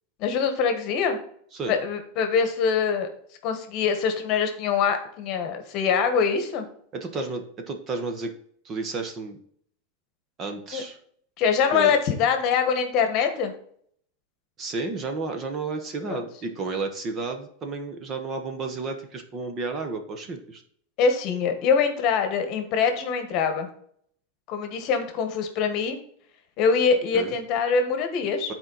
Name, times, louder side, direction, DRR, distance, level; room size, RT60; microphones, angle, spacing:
voice 1, 0.2-1.2 1.7-3.1 3.4-6.6 10.7-10.8 11.4-13.5 16.1-16.2 21.0-23.7 24.5-26.0 26.6-28.5, left 6 dB, 40° left, 7 dB, 1.2 m, -24 dB
voice 2, 6.9-8.3 8.6-9.4 10.4-11.0 11.7-11.9 14.6-20.6 27.1-27.3, right 3 dB, 25° right, 6 dB, 0.9 m, -32 dB
9.5 x 4.5 x 3.9 m, 0.63 s
supercardioid pair, 155°, 0 cm